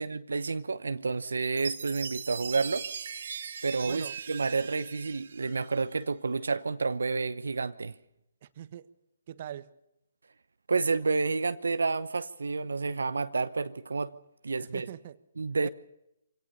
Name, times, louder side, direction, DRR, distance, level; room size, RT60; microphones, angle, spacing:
voice 1, 0.0-2.9 3.6-7.9 10.7-14.1 14.4-14.9 15.4-15.7, right 4 dB, 80° right, 0.9 m, -30 dB
Chime, 1.4-6.0, right 6 dB, 60° right, 1.9 m, -40 dB
voice 2, 3.8-4.2 8.4-8.9 9.3-9.7 14.6-15.2 15.6-15.7, right 11 dB, 45° right, 1.3 m, -42 dB
25.5 x 17.5 x 6.8 m
figure-of-eight pair, 140°, 0 cm